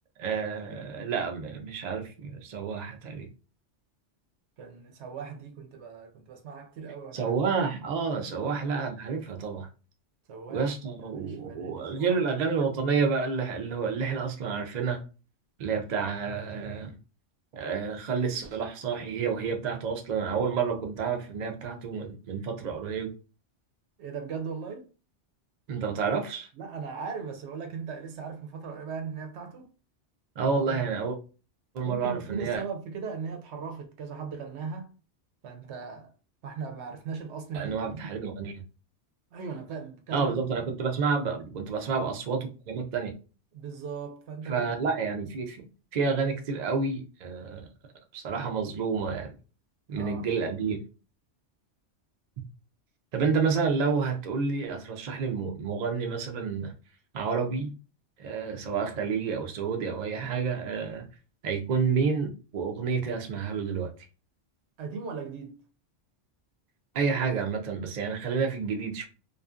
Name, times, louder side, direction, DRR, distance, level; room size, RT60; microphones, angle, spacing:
voice 1, 0.2-3.3 7.1-9.7 10.5-15.0 15.6-16.9 17.5-23.1 25.7-26.5 30.4-31.2 31.7-32.6 37.5-38.6 40.1-43.1 44.4-45.6 45.9-47.7 48.1-49.3 49.9-50.8 53.1-56.7 57.1-57.7 58.2-61.1 61.4-63.9 66.9-69.1, right 5 dB, 55° right, 0.5 m, -29 dB
voice 2, 4.6-7.3 8.4-8.6 10.3-12.2 24.0-24.9 26.5-29.7 30.6-30.8 31.8-34.9 35.4-36.1 36.4-38.1 39.3-40.8 43.5-44.7 50.0-50.3 64.8-65.6, right 5 dB, 70° right, 0.9 m, -38 dB
2.5 x 2.4 x 2.4 m
omnidirectional pair, 1.2 m